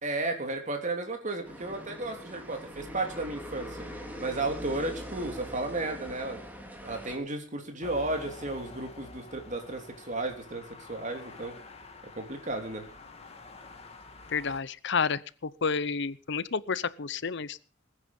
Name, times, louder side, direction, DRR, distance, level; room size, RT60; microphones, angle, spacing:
voice 1, 0.0-3.8 4.2-6.4 6.8-10.6 10.9-11.5 12.1-12.8, right 2 dB, 40° right, 4 dB, 3.3 m, -33 dB
sound 1, 1.4-7.2, equal, 10° right, 3.4 m, -42 dB
sound 2, 7.8-14.6, left 3 dB, 30° left, 2.3 m, -48 dB
voice 2, 14.3-17.6, left 5 dB, 65° left, 17 dB, 0.7 m, -30 dB
20.5 x 9.7 x 5.5 m, 0.38 s
head